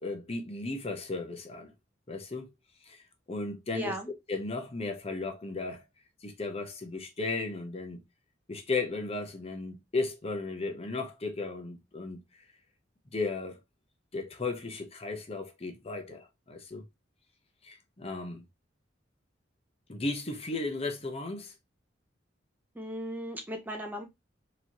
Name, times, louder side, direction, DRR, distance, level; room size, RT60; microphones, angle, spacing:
voice 1, 0.0-1.7 2.1-2.5 2.9-3.9 4.3-5.8 6.2-8.0 8.5-12.2 13.1-13.6 14.1-16.8 17.6-18.4 19.9-21.5, left 3 dB, 30° left, 0.8 m, -35 dB
voice 2, 3.7-4.1 22.7-24.1, equal, 10° right, 0.7 m, -36 dB
4.4 x 3.0 x 2.8 m
head